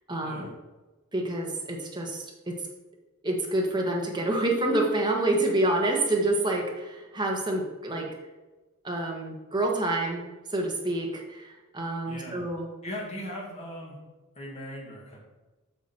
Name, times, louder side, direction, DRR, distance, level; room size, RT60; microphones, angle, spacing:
voice 1, 0.1-0.5 1.1-2.6 3.2-8.1 8.8-10.2 10.5-12.7, right 2 dB, 20° right, 0 dB, 1.4 m, -28 dB
voice 2, 12.1-12.4 12.8-14.0 14.4-15.2, equal, 30° left, -3 dB, 2.3 m, -39 dB
8.2 x 6.0 x 4.5 m, 1.2 s
head